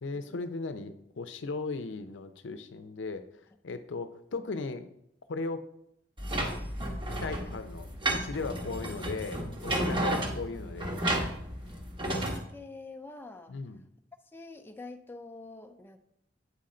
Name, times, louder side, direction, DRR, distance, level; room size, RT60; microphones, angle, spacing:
voice 1, 0.0-3.2 3.6-4.9 5.3-5.6 7.2-11.2 13.5-13.8, left 3 dB, 80° left, 10 dB, 0.6 m, -37 dB
sound 1, 6.2-12.4, right 1 dB, 25° right, 1.0 m, -32 dB
voice 2, 12.0-13.5 14.3-16.0, left 3 dB, 10° left, 6 dB, 0.3 m, -46 dB
8.3 x 3.8 x 4.2 m, 0.76 s
head